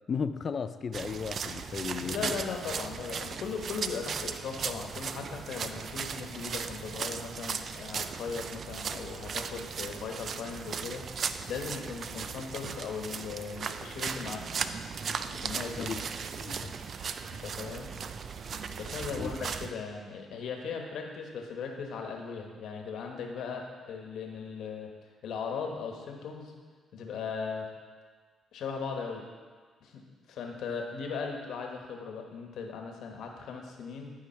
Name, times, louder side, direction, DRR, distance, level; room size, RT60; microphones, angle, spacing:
voice 1, 0.1-2.3 15.8-16.0 16.4-16.7 19.1-19.3, left 6 dB, 45° left, 12 dB, 0.4 m, -35 dB
sound 1, 0.9-19.7, right 6 dB, 55° right, 0.4 m, -37 dB
voice 2, 2.0-11.0 11.5-14.5 15.3-16.0 17.4-17.9 18.8-24.9 25.2-26.5 26.9-27.7 28.5-29.2 29.8-30.0 30.3-34.1, left 5 dB, 75° left, 2 dB, 1.2 m, -38 dB
11.5 x 4.8 x 4.5 m, 1.5 s
cardioid pair, 90°, 0 cm